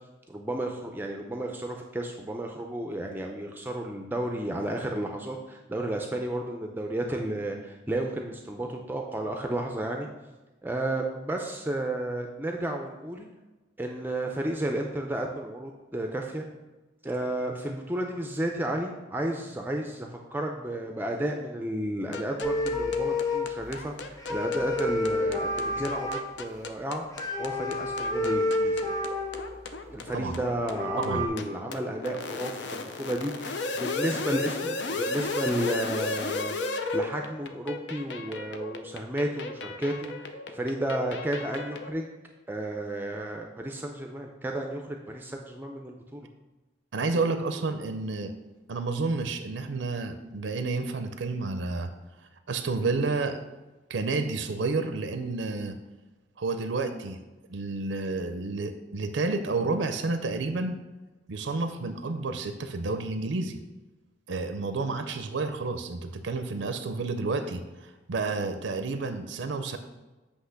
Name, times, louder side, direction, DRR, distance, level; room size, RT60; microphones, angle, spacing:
voice 1, 0.3-10.1 10.6-13.3 13.8-16.4 17.0-27.0 27.4-28.9 29.9-36.6 36.9-42.1 42.5-46.3, right 1 dB, 10° right, 2 dB, 0.4 m, -32 dB
sound 1, 22.1-41.9, left 3 dB, 70° left, 0.6 m, -35 dB
sound 2, 22.4-23.7 24.2-26.3 27.2-29.6 30.3-30.4 30.6-31.3, left 2 dB, 20° left, 0.8 m, -29 dB
voice 2, 46.9-48.3 48.7-51.9 52.5-53.4 53.9-55.8 56.4-57.2 57.5-60.8 61.3-63.6 64.3-69.8, right 3 dB, 80° right, 8 dB, 0.5 m, -30 dB
8.1 x 2.9 x 5.7 m, 1.1 s
head